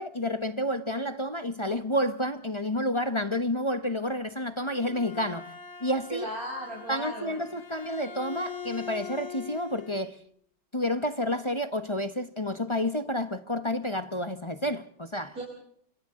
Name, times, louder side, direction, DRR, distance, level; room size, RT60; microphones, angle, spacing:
voice 1, 0.0-5.5 5.8-6.3 6.9-10.2 10.7-15.3, left 1 dB, 20° left, 0.8 m, -30 dB
Bowed string instrument, 4.5-10.0, left 6 dB, 50° left, 2.6 m, -42 dB
voice 2, 6.1-7.4 15.3-15.4, equal, 45° right, 5.7 m, -36 dB
29.0 x 26.5 x 3.8 m
omnidirectional pair, 2.1 m